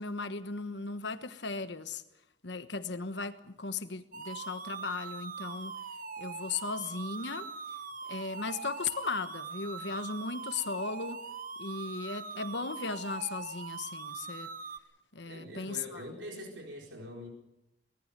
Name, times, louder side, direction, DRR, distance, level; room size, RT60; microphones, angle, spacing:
voice 1, 0.0-2.0 2.4-5.7 6.2-7.5 8.1-11.2 11.6-14.5 15.1-16.1, left 4 dB, 65° left, 10 dB, 1.3 m, -37 dB
sound 1, 4.1-14.8, right 5 dB, 45° right, 1.3 m, -42 dB
voice 2, 15.3-17.3, equal, 75° right, 1 dB, 4.5 m, -44 dB
24.0 x 18.5 x 6.8 m, 0.84 s
head